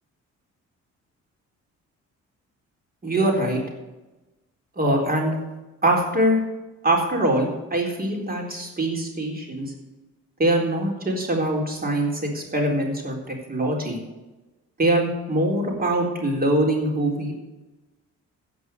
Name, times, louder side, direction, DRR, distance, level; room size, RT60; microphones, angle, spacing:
voice 1, 3.0-3.6 4.8-5.4 5.8-6.4 6.8-9.7 10.4-14.0 14.8-17.4, right 1 dB, 30° right, 1 dB, 4.0 m, -23 dB
16.0 x 5.4 x 8.0 m, 1.1 s
cardioid pair, 90°, 30 cm